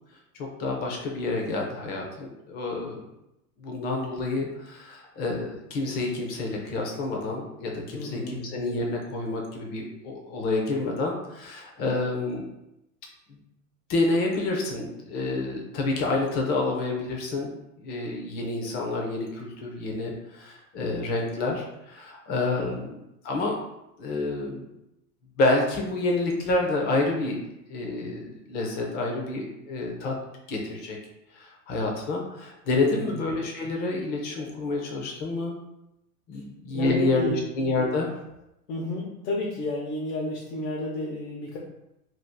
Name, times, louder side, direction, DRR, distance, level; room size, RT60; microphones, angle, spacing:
voice 1, 0.6-3.0 3.6-12.4 13.3-13.4 13.9-23.0 23.2-23.6 24.0-24.7 25.4-30.1 30.5-31.0 31.3-35.5 36.3-38.1, left 2 dB, 20° left, 0 dB, 0.4 m, -28 dB
voice 2, 7.9-8.5 22.6-22.8 32.9-33.2 36.7-37.4 38.7-41.6, left 2 dB, 80° left, -3 dB, 0.9 m, -31 dB
2.7 x 2.3 x 3.5 m, 0.87 s
supercardioid pair, 135°, 46 cm